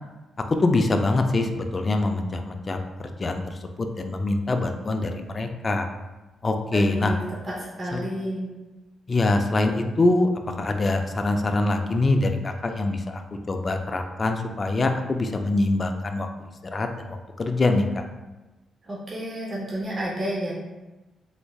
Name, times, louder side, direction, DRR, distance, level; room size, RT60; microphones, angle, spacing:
voice 1, 0.6-3.4 3.8-5.9 6.4-7.1 7.9-8.0 9.1-10.3 10.6-13.2 13.5-16.3 16.7-18.0, left 2 dB, 30° left, 5 dB, 0.3 m, -24 dB
voice 2, 6.7-7.2 7.4-8.5 18.8-20.5, right 1 dB, 30° right, -5 dB, 0.7 m, -30 dB
3.4 x 3.1 x 2.3 m, 1.1 s
cardioid pair, 105°, 0 cm